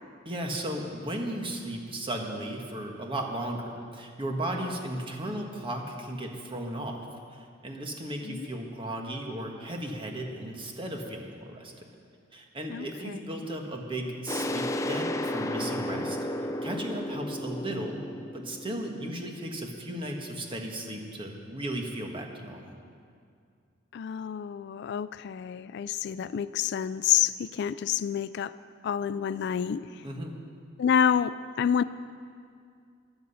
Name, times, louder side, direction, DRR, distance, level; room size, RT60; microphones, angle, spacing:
voice 1, 0.2-11.7 12.3-16.2 16.6-18.0 18.3-22.7 30.0-30.3, right 1 dB, 25° right, 2 dB, 1.5 m, -35 dB
voice 2, 12.7-13.2 23.9-28.5 28.8-30.0 30.8-31.8, left 8 dB, 60° left, 15 dB, 0.3 m, -28 dB
sound 1, 14.3-19.7, left 1 dB, 15° left, 0.6 m, -33 dB
16.0 x 10.5 x 5.6 m, 2.3 s
head